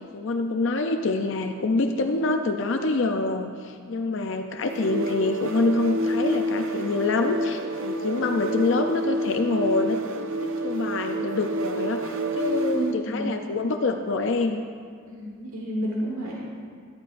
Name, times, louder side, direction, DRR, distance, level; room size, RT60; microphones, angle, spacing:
voice 1, 0.0-10.0 10.4-14.6, left 3 dB, 60° left, 5 dB, 0.5 m, -26 dB
sound 1, 4.6-13.0, equal, 65° right, 0.6 m, -28 dB
voice 2, 12.7-13.3 15.2-16.3, right 1 dB, 85° right, -3 dB, 1.5 m, -30 dB
14.0 x 11.0 x 2.6 m, 2.1 s
head